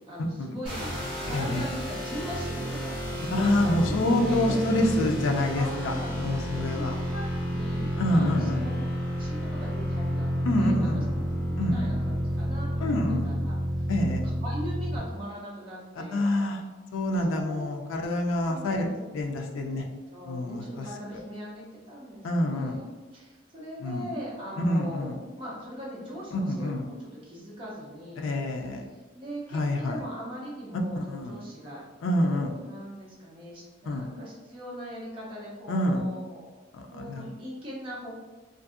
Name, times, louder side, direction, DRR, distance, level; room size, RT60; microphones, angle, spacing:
voice 1, 0.1-4.6 5.5-8.7 9.1-11.0 11.7-14.1 14.4-16.3 17.2-17.7 18.5-19.3 20.1-28.4 28.9-31.8 32.1-36.6 36.9-38.2, equal, 25° right, -6 dB, 0.6 m, -40 dB
sound 1, 0.6-15.0, equal, 5° right, 1.0 m, -30 dB
voice 2, 1.3-1.7 3.3-6.9 8.0-8.6 10.4-11.2 11.6-11.9 12.8-13.3 13.9-14.2 16.1-16.6 16.9-18.9 19.1-19.8 20.2-21.2 22.2-22.8 23.8-24.1 24.6-25.2 26.3-26.9 28.2-28.8 29.5-30.0 30.9-31.3 32.0-32.5 33.8-34.1 35.7-36.0 36.7-37.3, left 1 dB, 75° left, 2 dB, 0.4 m, -27 dB
2.5 x 2.5 x 2.4 m, 1.2 s
head